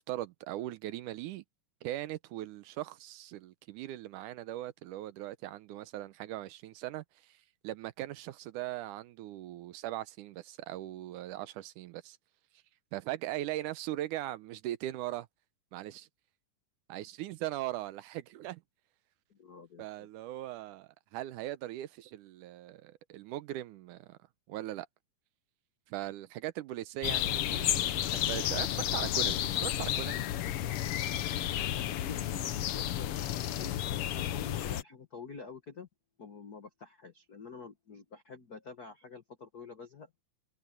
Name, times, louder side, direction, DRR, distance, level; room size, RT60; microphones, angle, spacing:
voice 1, 0.0-1.4 1.8-7.4 7.6-12.2 12.9-15.3 15.7-16.1 16.9-18.6 19.8-24.2 24.5-24.9 25.9-30.3, right 14 dB, 80° right, 2.2 m, -39 dB
voice 2, 19.3-20.1 31.8-35.9 36.2-40.1, left 5 dB, 50° left, 1.1 m, -48 dB
sound 1, 27.0-34.8, left 12 dB, 80° left, 1.3 m, -32 dB
omnidirectional pair, 3.8 m